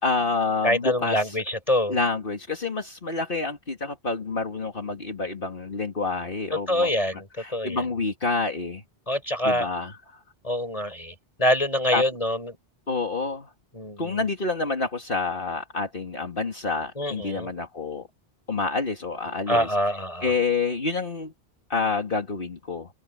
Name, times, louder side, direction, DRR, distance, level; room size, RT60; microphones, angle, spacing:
voice 1, 0.0-1.4 1.9-8.8 9.4-10.2 11.9-12.0 12.9-13.5 14.0-18.1 18.5-19.7 20.2-21.3 21.7-22.9, left 4 dB, 60° left, 2.6 m, -28 dB
voice 2, 0.6-2.0 6.7-7.3 7.5-7.8 9.1-9.7 10.4-12.6 13.7-14.2 17.0-17.5 19.5-20.3, left 1 dB, 35° left, 6.7 m, -25 dB
open air
omnidirectional pair, 1.1 m